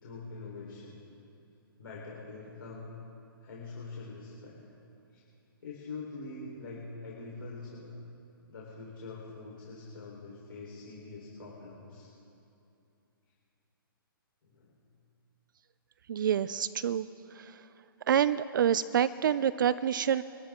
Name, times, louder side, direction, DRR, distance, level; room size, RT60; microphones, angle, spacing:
voice 1, 0.0-1.0 1.8-2.9 3.4-4.6 5.1-5.2 5.6-7.9 8.5-12.1 14.4-14.7, left 3 dB, 70° left, -4 dB, 4.1 m, -44 dB
voice 2, 16.1-17.1 17.3-17.6 18.1-20.2, right 9 dB, 60° right, 15 dB, 0.5 m, -27 dB
25.0 x 13.5 x 3.7 m, 2.7 s
hypercardioid pair, 150°, 12 cm